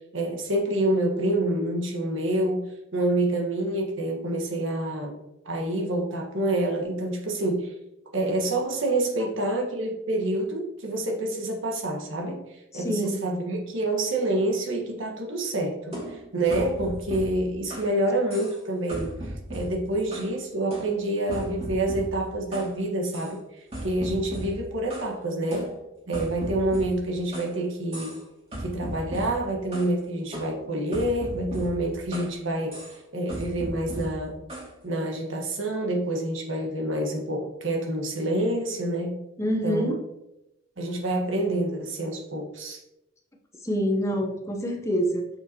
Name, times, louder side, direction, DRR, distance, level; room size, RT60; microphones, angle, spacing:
voice 1, 0.1-2.7 2.9-5.2 5.4-7.7 8.1-25.7 26.1-28.2 28.6-32.7 33.1-34.4 34.8-39.1 39.6-39.9 40.8-42.8, right 1 dB, 75° right, 1 dB, 1.4 m, -27 dB
voice 2, 12.7-13.2 39.4-40.0 43.6-45.3, equal, 15° left, 1 dB, 0.8 m, -26 dB
sound 1, 15.9-18.0 18.3-18.6 18.9-20.4 20.7-22.7 23.1-23.3 23.7-25.1 25.5-27.6 27.9-28.2 28.5-29.9 30.3-32.4 32.7-33.0 33.3-34.7, right 1 dB, 30° right, 2.3 m, -37 dB
6.8 x 5.6 x 2.9 m, 0.88 s
head